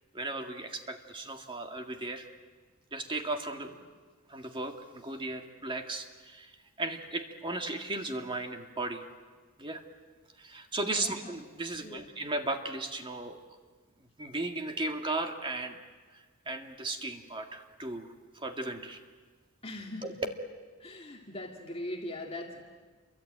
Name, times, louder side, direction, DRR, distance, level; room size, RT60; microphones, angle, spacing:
voice 1, 0.1-2.3 2.9-3.9 4.3-6.5 6.8-9.0 9.6-9.8 10.4-13.4 14.2-15.8 16.5-19.0 20.0-20.2, right 2 dB, 25° right, 4 dB, 2.0 m, -36 dB
voice 2, 19.6-20.1 20.8-22.6, left 1 dB, 30° left, 1 dB, 2.3 m, -40 dB
28.0 x 23.5 x 8.8 m, 1.4 s
head